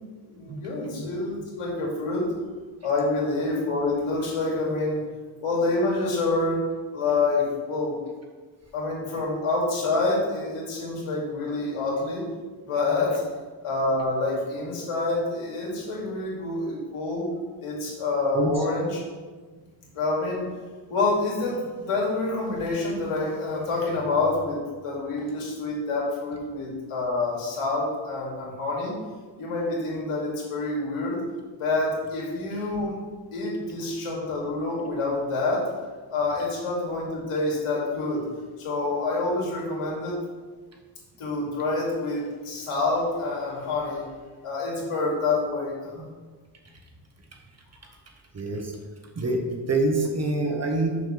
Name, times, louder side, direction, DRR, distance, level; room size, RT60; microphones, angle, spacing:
voice 1, 0.3-2.3 2.8-5.0 5.4-6.6 6.9-7.9 8.7-12.2 12.6-13.2 13.6-17.3 17.6-19.0 19.9-20.4 20.9-28.9 29.4-31.2 31.6-32.9 33.3-35.6 36.1-38.2 38.6-40.2 41.2-44.0 44.4-46.0, left 3 dB, 90° left, -3 dB, 2.5 m, -27 dB
voice 2, 48.3-48.7 49.2-51.0, right 2 dB, 30° right, 2 dB, 1.1 m, -26 dB
6.3 x 5.5 x 5.8 m, 1.4 s
wide cardioid pair, 170°, 50 cm